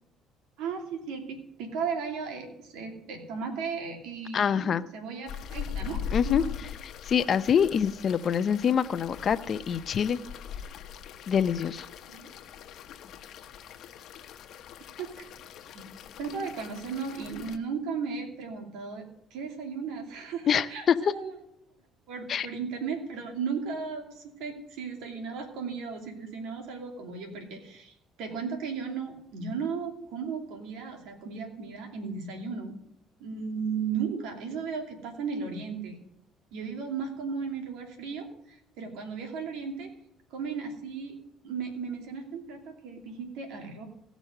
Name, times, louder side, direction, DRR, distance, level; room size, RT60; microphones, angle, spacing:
voice 1, 0.6-6.5 12.1-12.3 15.0-15.3 15.7-15.8 16.2-21.3 22.1-32.7 33.2-35.9 36.5-39.9 40.3-41.2 41.4-43.8, right 5 dB, 85° right, 3 dB, 2.7 m, -35 dB
voice 2, 4.3-4.8 6.1-6.4 7.0-10.2 11.3-11.9 20.5-21.0 22.3-22.5, left 7 dB, 45° left, 14 dB, 0.6 m, -25 dB
sound 1, 5.3-17.6, left 8 dB, 65° left, 1.0 m, -41 dB
16.5 x 6.1 x 6.5 m, 0.78 s
cardioid pair, 105°, 0 cm